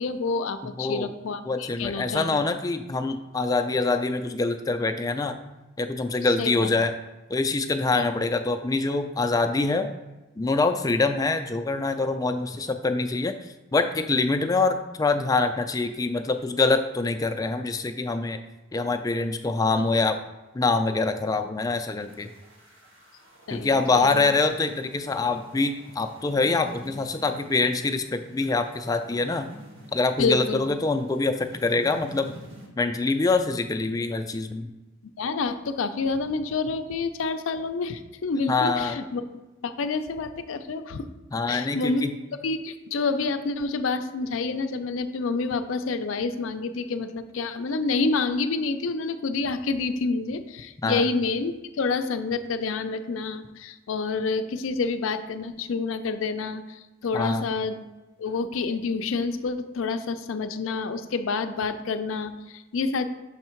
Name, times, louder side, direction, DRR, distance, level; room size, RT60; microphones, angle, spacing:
voice 1, 0.0-2.4 6.2-6.7 7.9-8.1 23.5-24.2 30.2-30.7 35.2-39.3 39.6-41.1 41.5-42.1 42.4-57.8 58.2-63.0, left 4 dB, 85° left, 9 dB, 0.4 m, -28 dB
voice 2, 0.8-1.1 1.5-5.4 5.8-6.9 7.3-9.9 10.4-13.4 13.7-18.4 18.7-20.2 20.5-22.3 23.5-29.5 29.9-32.3 32.8-34.7 38.5-39.0 41.3-42.1 50.8-51.0 57.1-57.5, left 3 dB, 20° left, 7 dB, 0.3 m, -25 dB
sound 1, 22.0-32.7, equal, 85° right, 1.5 m, -48 dB
6.4 x 3.5 x 4.4 m, 1.1 s
head